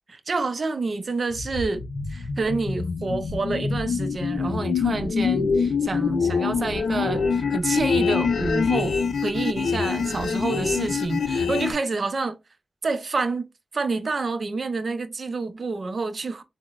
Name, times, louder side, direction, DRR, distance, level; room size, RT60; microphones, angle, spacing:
voice 1, 0.3-12.4 12.8-13.5 13.7-16.4, right 3 dB, 45° right, 0.5 m, -28 dB
sound 1, 1.3-11.7, left 5 dB, 85° left, 0.5 m, -25 dB
5.7 x 2.0 x 2.4 m
wide cardioid pair, 170°, 0 cm